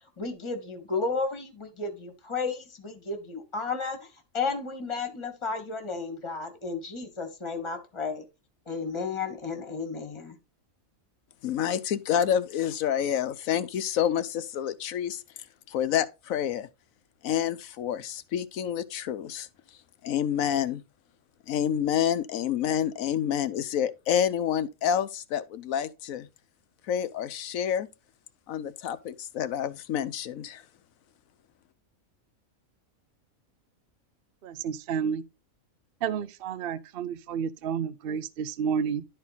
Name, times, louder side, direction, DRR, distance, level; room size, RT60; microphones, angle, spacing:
voice 1, 0.2-4.1 4.3-8.2 8.7-10.4, left 4 dB, 20° left, 1.4 m, -33 dB
voice 2, 11.4-15.2 15.7-16.7 17.2-19.5 20.0-20.8 21.5-26.3 26.9-27.9 28.5-30.6, left 9 dB, 75° left, 1.1 m, -28 dB
voice 3, 34.4-35.2 36.0-39.1, right 7 dB, 60° right, 0.7 m, -30 dB
11.5 x 4.5 x 4.0 m
omnidirectional pair, 1.5 m